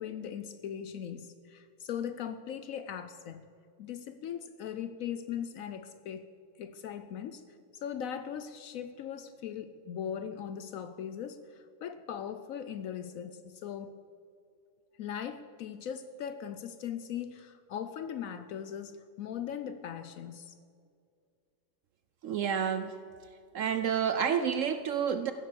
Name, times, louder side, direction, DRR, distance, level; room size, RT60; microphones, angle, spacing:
voice 1, 0.0-3.4 3.8-6.3 6.6-7.4 7.7-13.9 15.0-20.5, left 8 dB, 70° left, 0.8 m, -39 dB
voice 2, 22.2-23.0 23.5-25.3, right 7 dB, 70° right, 0.8 m, -29 dB
15.0 x 7.9 x 6.8 m
omnidirectional pair, 1.8 m